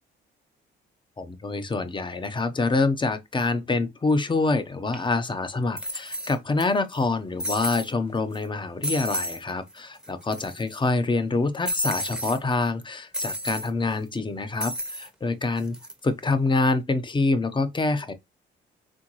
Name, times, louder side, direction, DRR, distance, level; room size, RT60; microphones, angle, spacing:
voice 1, 1.2-15.8 16.0-18.1, left 3 dB, 25° left, 0.9 m, -26 dB
sound 1, 4.9-5.0 5.8-6.6 6.9-7.0 7.4-7.9 8.3-8.5 8.8-9.4 9.7-9.8 10.0-10.7 11.6-12.4 13.1-13.7 14.6-15.1 15.6-15.9, equal, 5° right, 1.0 m, -31 dB
4.4 x 3.5 x 3.1 m
cardioid pair, 90°, 20 cm